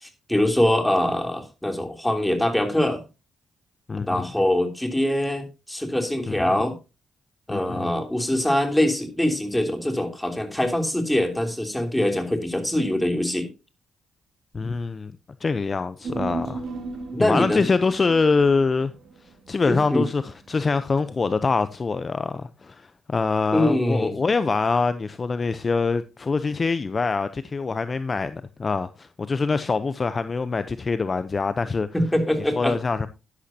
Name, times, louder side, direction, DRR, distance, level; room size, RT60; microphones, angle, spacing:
voice 1, 0.0-3.0 4.1-6.7 7.5-13.5 17.1-17.6 19.7-20.0 23.5-24.2 31.9-32.8, left 1 dB, 5° left, 3.1 m, -23 dB
voice 2, 3.9-4.3 6.3-6.5 7.5-7.9 14.5-15.1 15.4-16.6 17.2-18.9 19.5-20.2 20.5-31.9 32.6-33.1, left 4 dB, 40° left, 0.7 m, -24 dB
Human voice, 16.0-20.7 20.9-21.0, right 3 dB, 60° right, 2.4 m, -36 dB
11.5 x 11.5 x 2.8 m
cardioid pair, 70°, 0 cm